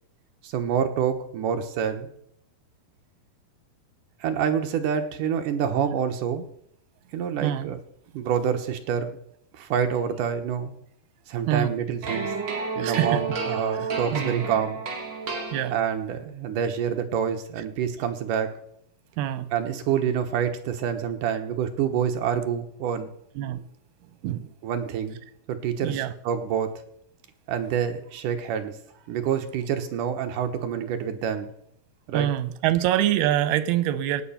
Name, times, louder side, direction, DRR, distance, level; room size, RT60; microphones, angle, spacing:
voice 1, 0.4-2.1 4.2-6.4 7.1-7.8 8.1-9.2 9.5-10.7 11.3-12.3 12.8-14.8 15.7-18.5 19.5-23.1 24.6-25.2 25.5-26.7 27.5-28.8 29.1-31.5 32.1-32.3, right 8 dB, 65° right, 6 dB, 2.5 m, -27 dB
voice 2, 7.4-7.7 11.5-11.7 12.8-13.2 13.7-14.4 15.5-15.8 19.2-19.5 23.4-23.6 24.2-24.5 25.8-26.1 32.1-34.2, right 12 dB, 90° right, 13 dB, 2.8 m, -25 dB
sound 1, 12.0-16.1, right 4 dB, 40° right, 2.2 m, -31 dB
17.5 x 8.5 x 5.7 m, 0.71 s
omnidirectional pair, 4.3 m